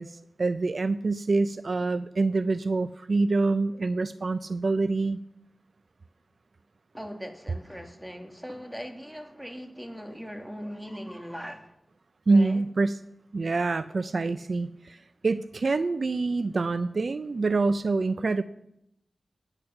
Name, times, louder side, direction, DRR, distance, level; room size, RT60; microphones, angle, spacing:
voice 1, 0.0-5.2 12.3-13.0 13.3-18.4, right 3 dB, 60° right, 13 dB, 0.5 m, -26 dB
voice 2, 6.9-11.7 12.3-12.6, equal, 5° right, 4 dB, 2.5 m, -40 dB
19.5 x 8.9 x 5.9 m, 0.83 s
cardioid pair, 50°, 0 cm